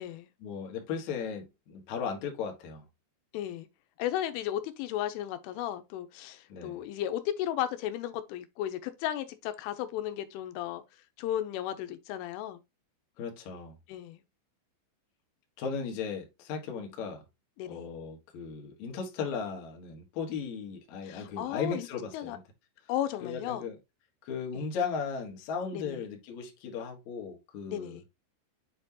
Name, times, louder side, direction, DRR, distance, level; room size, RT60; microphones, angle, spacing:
voice 1, 0.4-2.8 6.5-6.8 13.2-13.8 15.6-17.2 17.7-22.4 23.2-23.8 24.2-28.0, left 6 dB, 65° left, 1.8 m, -36 dB
voice 2, 3.3-3.7 4.0-10.8 11.2-12.6 13.9-14.2 17.6-17.8 21.0-21.9 22.1-22.4 22.9-23.7 24.5-24.7 25.7-26.0 27.7-28.0, left 12 dB, 90° left, 3.2 m, -34 dB
8.0 x 4.4 x 2.8 m
omnidirectional pair, 5.7 m